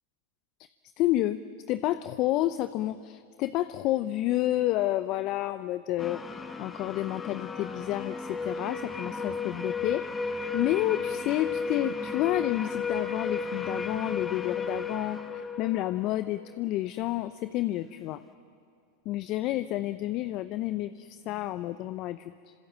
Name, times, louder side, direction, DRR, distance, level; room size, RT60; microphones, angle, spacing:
voice 1, 1.0-1.4 1.7-10.1 10.5-18.2 19.1-22.5, left 15 dB, 50° left, 13 dB, 0.7 m, -30 dB
sound 1, 6.0-16.6, left 4 dB, 15° left, 1.6 m, -34 dB
26.5 x 26.0 x 7.5 m, 2.3 s
hypercardioid pair, 105°, 0 cm